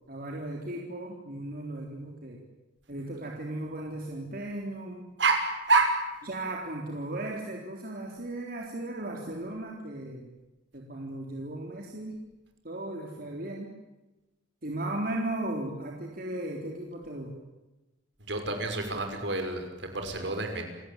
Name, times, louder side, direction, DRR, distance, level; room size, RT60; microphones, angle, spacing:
voice 1, 0.1-2.4 2.9-5.1 6.2-10.3 10.7-12.2 12.6-13.7 14.6-17.3, right 1 dB, 50° right, 0 dB, 3.6 m, -36 dB
voice 2, 5.2-5.9 18.3-20.6, right 3 dB, 70° right, 5 dB, 5.8 m, -27 dB
29.0 x 17.5 x 9.2 m, 1.1 s
head